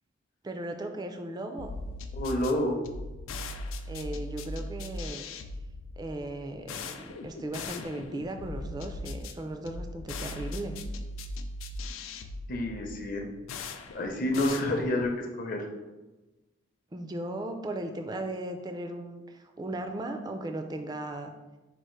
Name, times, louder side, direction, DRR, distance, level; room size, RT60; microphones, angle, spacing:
voice 1, 0.4-1.7 3.9-5.2 6.0-10.8 16.9-21.3, right 1 dB, 20° right, 6 dB, 0.3 m, -37 dB
sound 1, 1.6-15.2, left 2 dB, 85° left, 0.4 m, -39 dB
voice 2, 2.1-2.8 12.5-13.3 13.9-15.7, left 1 dB, 45° left, 3 dB, 0.6 m, -29 dB
4.7 x 2.4 x 4.4 m, 1.1 s
head